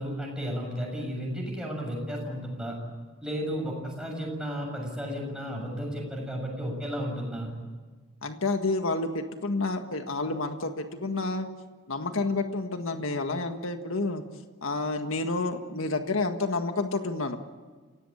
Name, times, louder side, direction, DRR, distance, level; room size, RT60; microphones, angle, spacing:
voice 1, 0.0-2.7 3.2-7.5, equal, 5° right, -1 dB, 7.1 m, -33 dB
voice 2, 8.2-11.5 11.9-14.2 14.6-17.4, left 3 dB, 80° left, 6 dB, 1.7 m, -29 dB
29.5 x 17.5 x 8.7 m, 1.4 s
head